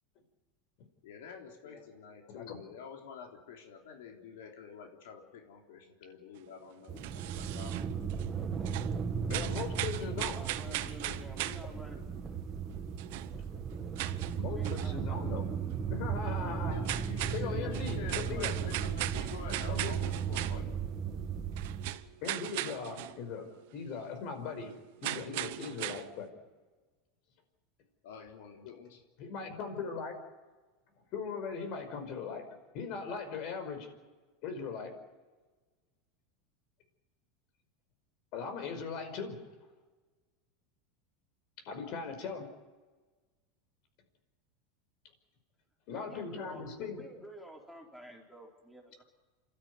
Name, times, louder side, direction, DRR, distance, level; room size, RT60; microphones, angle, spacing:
voice 1, 1.0-8.6 10.6-11.2 12.0-12.1 16.7-20.7 28.0-29.0, left 6 dB, 80° left, 2 dB, 3.7 m, -48 dB
voice 2, 2.3-2.6 9.3-10.4 14.4-15.5 15.9-16.8 17.3-18.6 19.7-20.0 22.2-26.3 29.2-30.2 31.1-32.5 32.7-33.9 34.4-35.0 38.3-39.4 41.7-42.5 45.9-47.0, left 5 dB, 55° left, 7 dB, 5.2 m, -39 dB
sound 1, 6.4-8.4 8.6-11.8 12.7-12.8 13.0-15.0 15.3-15.4 15.7-15.8 16.1-16.2 16.7-20.9 21.2-23.2 23.5-23.6 23.9-24.0 25.0-26.1, right 17 dB, 70° right, 1.0 m, -39 dB
sound 2, 6.9-21.9, right 7 dB, 25° right, 1.9 m, -36 dB
voice 3, 10.1-12.3 14.5-15.3 45.9-49.0, equal, ahead, 0 dB, 4.1 m, -50 dB
28.0 x 13.0 x 9.5 m, 1.3 s
supercardioid pair, 135°, 0 cm